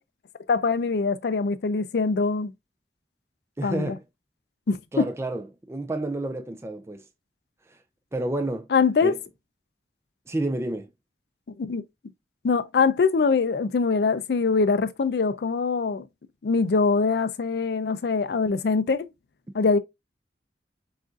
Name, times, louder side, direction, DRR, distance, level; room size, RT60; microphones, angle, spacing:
voice 1, 0.5-2.5 3.6-4.0 4.7-5.0 8.7-9.1 11.6-11.8 12.4-16.1 16.4-19.1 19.5-19.8, left 4 dB, 65° left, 0.4 m, -23 dB
voice 2, 3.6-4.0 4.9-7.0 7.7-7.8 8.1-8.7 9.0-9.2 10.3-10.9, right 2 dB, 15° right, 0.3 m, -30 dB
6.1 x 2.5 x 2.4 m
head